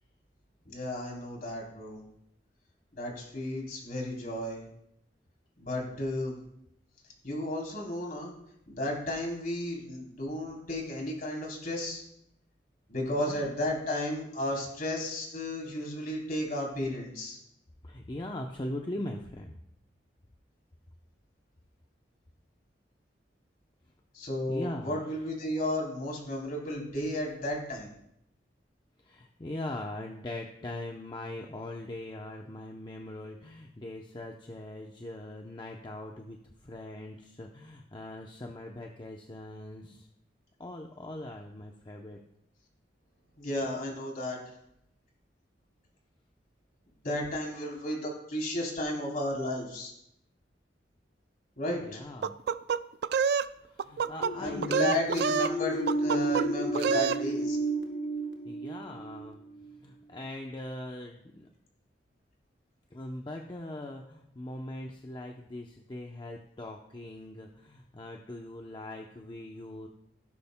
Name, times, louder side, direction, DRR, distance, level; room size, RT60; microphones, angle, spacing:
voice 1, 0.6-2.0 2.9-4.6 5.6-6.3 7.2-8.3 8.7-12.0 12.9-17.4 24.1-27.9 43.4-44.4 47.0-49.9 51.6-52.0 54.4-57.6, left 1 dB, 50° left, -1 dB, 3.4 m, -33 dB
voice 2, 13.1-13.5 14.5-14.7 17.8-19.5 24.5-25.0 29.0-40.1 40.6-42.2 51.8-52.3 53.6-55.0 56.3-56.4 56.7-57.0 58.5-59.4 59.8-61.5 62.9-69.9, left 1 dB, 25° left, 1 dB, 0.7 m, -41 dB
sound 1, 52.2-53.5 53.8-54.3 54.6-55.5 55.9-56.5 56.7-57.2, right 6 dB, 65° right, 0.3 m, -27 dB
sound 2, 54.1-59.7, right 1 dB, 80° left, 1.4 m, -32 dB
16.5 x 11.0 x 2.2 m, 0.78 s
head